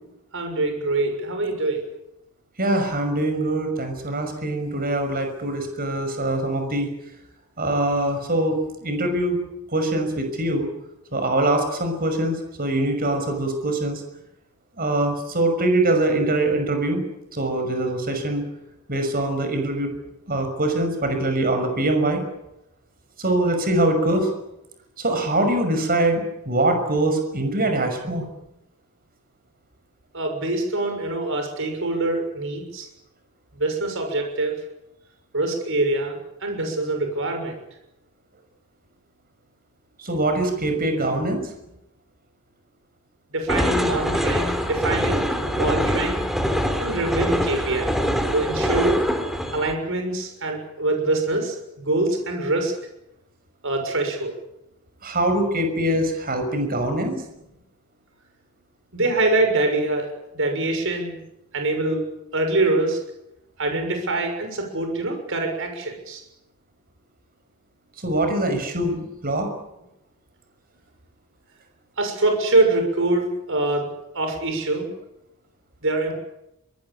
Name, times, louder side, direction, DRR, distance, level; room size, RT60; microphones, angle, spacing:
voice 1, 0.3-1.8 30.1-32.9 33.6-34.6 35.3-37.6 43.3-45.2 45.5-46.2 46.8-47.9 48.3-49.0 49.5-52.7 53.6-54.3 58.9-60.1 60.3-61.2 61.5-63.0 63.6-66.2 72.0-73.9 74.1-74.9 75.8-76.1, right 2 dB, 60° right, 5 dB, 6.5 m, -24 dB
voice 2, 2.6-6.9 7.6-9.4 9.7-10.7 11.1-14.0 14.8-17.0 17.3-18.4 18.9-19.9 20.3-22.2 23.2-24.3 25.0-28.3 40.0-41.4 55.0-57.2 68.0-69.5, right 1 dB, 40° right, 6 dB, 6.0 m, -23 dB
sound 1, 43.5-49.7, equal, ahead, 3.3 m, -24 dB
24.0 x 20.5 x 8.8 m, 0.87 s
head